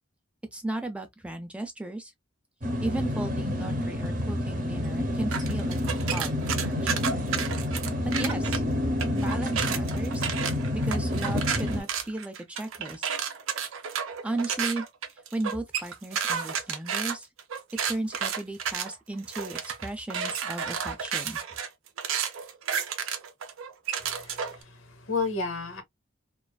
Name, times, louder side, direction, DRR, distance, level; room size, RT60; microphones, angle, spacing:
voice 1, 0.5-2.1 2.8-7.1 8.0-8.6 9.1-10.3 10.7-13.1 14.2-14.8 15.3-17.3 17.9-21.4, right 2 dB, 5° right, 0.3 m, -35 dB
sound 1, 2.6-11.8, left 1 dB, 40° right, 0.6 m, -29 dB
sound 2, 5.3-8.6 9.0-24.6, right 7 dB, 90° right, 0.5 m, -32 dB
voice 2, 24.0-25.8, left 4 dB, 80° left, 0.7 m, -32 dB
2.4 x 2.3 x 2.2 m
head